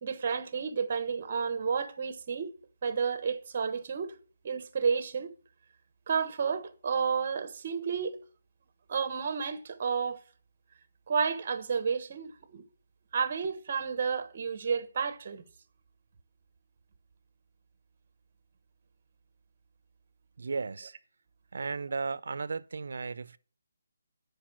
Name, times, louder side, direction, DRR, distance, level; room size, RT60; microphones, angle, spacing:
voice 1, 0.0-2.5 2.8-4.1 4.4-5.3 6.1-8.2 8.9-10.2 11.1-12.6 13.1-15.4, right 6 dB, 30° right, 1.0 m, -31 dB
voice 2, 20.4-20.9 21.5-23.4, right 4 dB, 60° right, 0.6 m, -35 dB
10.5 x 5.2 x 7.5 m
hypercardioid pair, 175°, 0 cm